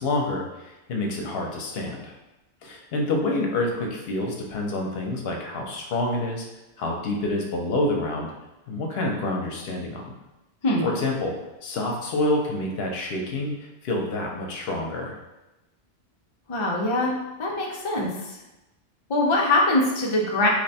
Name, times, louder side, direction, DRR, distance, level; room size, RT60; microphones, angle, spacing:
voice 1, 0.0-2.1 2.6-6.4 6.8-8.3 8.7-10.1 10.8-15.2, left 2 dB, 65° left, 0 dB, 0.8 m, -28 dB
voice 2, 16.5-18.1 19.1-20.5, left 2 dB, 45° left, -1 dB, 0.4 m, -23 dB
2.9 x 2.2 x 4.0 m, 1.0 s
omnidirectional pair, 1.2 m